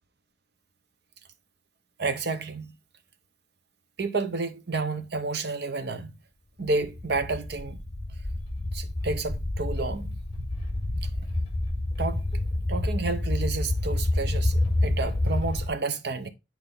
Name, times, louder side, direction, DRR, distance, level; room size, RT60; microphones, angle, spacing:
voice 1, 2.0-2.7 4.0-6.1 6.6-7.8 8.7-10.1 12.0-12.2 12.7-16.3, right 3 dB, 60° right, 0.9 m, -30 dB
sound 1, 6.7-15.7, left 1 dB, 30° left, 4.3 m, -28 dB
8.9 x 4.7 x 3.8 m
head